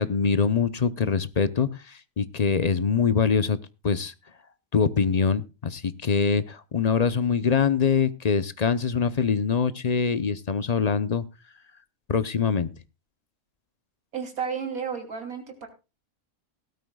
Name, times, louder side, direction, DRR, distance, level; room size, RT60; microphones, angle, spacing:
voice 1, 0.0-3.6 3.8-4.1 4.7-11.2 12.1-12.7, left 6 dB, 40° left, 14 dB, 0.6 m, -24 dB
voice 2, 14.1-15.7, right 6 dB, 85° right, 5 dB, 3.4 m, -32 dB
18.0 x 13.0 x 2.3 m, 0.29 s
omnidirectional pair, 1.5 m